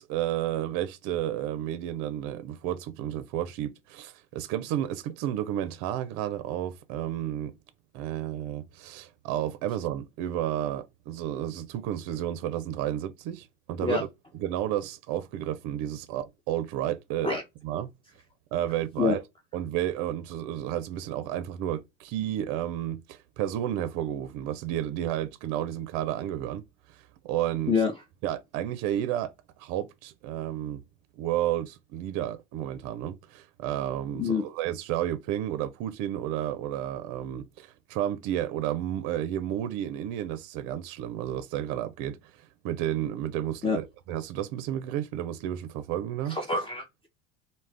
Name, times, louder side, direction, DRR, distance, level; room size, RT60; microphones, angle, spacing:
voice 1, 0.0-7.5 7.9-14.1 14.3-17.4 17.6-17.9 18.5-19.2 19.5-27.7 28.2-29.3 29.6-30.8 31.2-42.2 42.6-46.4, right 12 dB, 60° right, 0.5 m, -31 dB
voice 2, 46.3-47.1, left 4 dB, 15° left, 0.5 m, -26 dB
2.4 x 2.1 x 3.2 m
hypercardioid pair, 85°, 36 cm